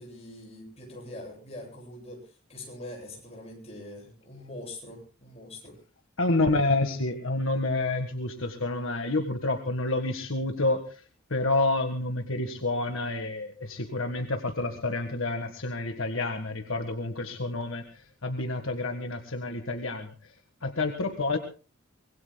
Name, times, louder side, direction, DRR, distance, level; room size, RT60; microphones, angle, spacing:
voice 1, 0.0-5.8, left 1 dB, 30° left, 0 dB, 7.9 m, -43 dB
voice 2, 6.2-11.0 11.3-20.1 20.6-21.4, left 2 dB, 70° left, 5 dB, 1.7 m, -29 dB
25.0 x 21.0 x 2.3 m, 0.33 s
head